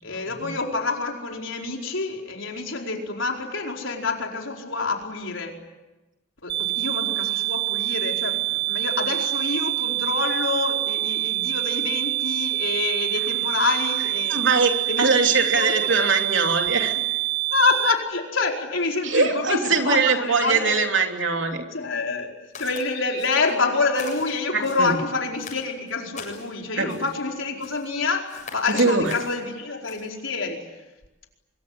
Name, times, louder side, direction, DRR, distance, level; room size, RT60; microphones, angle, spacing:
voice 1, 0.0-5.6 6.4-14.4 14.9-15.1 15.4-15.9 17.5-20.8 21.7-30.7, left 3 dB, 90° left, 1 dB, 4.7 m, -27 dB
sound 1, 6.5-17.9, right 16 dB, 50° right, 2.2 m, -26 dB
voice 2, 14.3-14.7 15.0-16.9 19.0-21.6 24.5-24.9 26.8-27.0 28.8-29.1, right 4 dB, 75° right, 4 dB, 3.2 m, -21 dB
Walk footsteps, 22.5-22.8 23.2-23.6 23.9-24.9 25.4-26.5 26.9-27.2 27.6-27.9 28.3-29.4 29.8-30.1, left 5 dB, 40° left, 7.8 m, -41 dB
25.0 x 23.5 x 9.8 m, 1.1 s
head